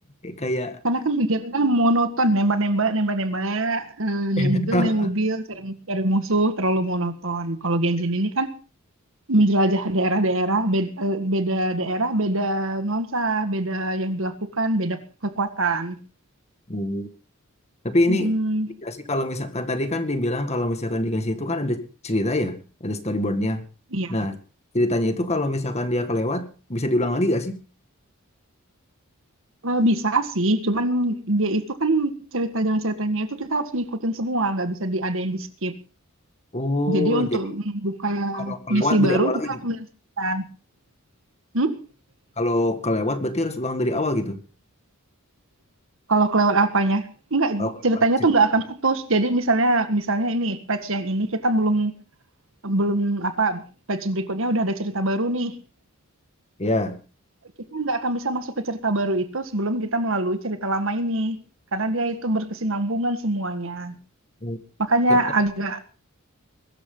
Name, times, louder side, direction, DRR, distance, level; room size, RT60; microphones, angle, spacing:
voice 1, 0.2-0.8 4.4-5.1 16.7-17.1 17.8-18.3 18.8-23.6 24.1-24.4 24.7-27.6 36.5-37.4 38.3-39.5 42.4-44.4 47.6-47.7 56.6-57.0 64.4-64.6 65.1-65.2, left 1 dB, 30° left, 8 dB, 1.9 m, -25 dB
voice 2, 0.8-8.5 9.3-16.0 18.1-18.7 23.9-24.1 29.6-35.7 36.9-39.3 39.6-39.8 40.2-40.4 41.5-41.8 46.1-51.9 52.6-53.6 53.9-55.5 57.7-61.4 61.7-63.9 64.8-65.8, right 2 dB, 65° right, 9 dB, 1.9 m, -23 dB
22.0 x 13.0 x 3.9 m, 0.36 s
head